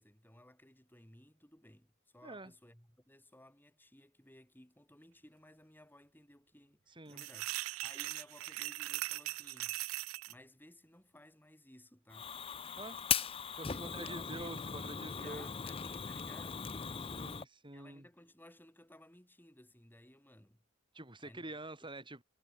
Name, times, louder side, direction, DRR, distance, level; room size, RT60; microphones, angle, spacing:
voice 1, 0.0-7.5 7.8-9.8 10.3-12.3 13.7-14.5 14.9-20.6 21.2-21.5, left 1 dB, 10° left, 6.3 m, -59 dB
voice 2, 2.2-2.5 6.9-7.3 12.8-13.0 13.5-15.5 17.1-18.1 20.9-22.2, right 2 dB, 25° right, 5.7 m, -47 dB
sound 1, 7.1-10.3, right 17 dB, 90° right, 0.4 m, -40 dB
Fire, 12.1-17.4, left 7 dB, 25° left, 0.6 m, -39 dB
head